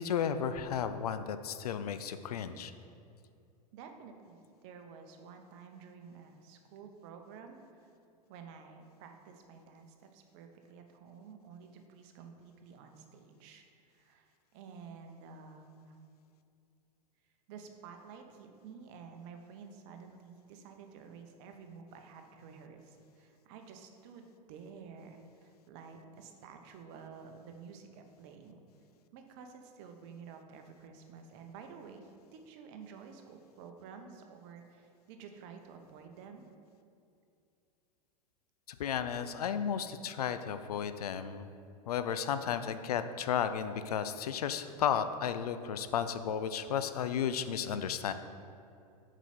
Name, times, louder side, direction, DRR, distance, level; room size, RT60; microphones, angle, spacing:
voice 1, 0.0-2.7 38.7-41.5 41.9-48.1, left 8 dB, 70° left, 11 dB, 0.4 m, -33 dB
voice 2, 3.7-7.9 8.3-16.0 17.5-28.6 29.1-36.5, right 6 dB, 45° right, 5 dB, 0.9 m, -51 dB
7.0 x 5.1 x 4.3 m, 2.5 s
figure-of-eight pair, 90°, 21 cm